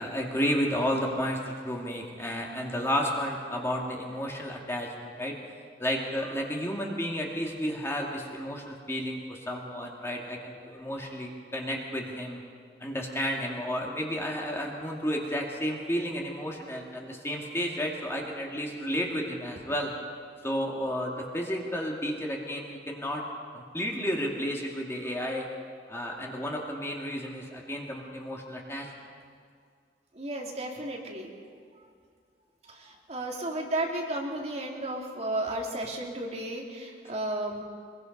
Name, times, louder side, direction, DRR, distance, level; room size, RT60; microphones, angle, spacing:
voice 1, 0.0-5.3 5.8-12.4 12.8-19.9 20.4-23.2 23.5-25.5 25.9-28.9 33.5-33.7, equal, 15° left, -1 dB, 2.1 m, -32 dB
voice 2, 30.1-31.3 32.7-37.6, right 1 dB, 35° right, -1 dB, 2.7 m, -33 dB
23.0 x 22.0 x 5.4 m, 2.1 s
head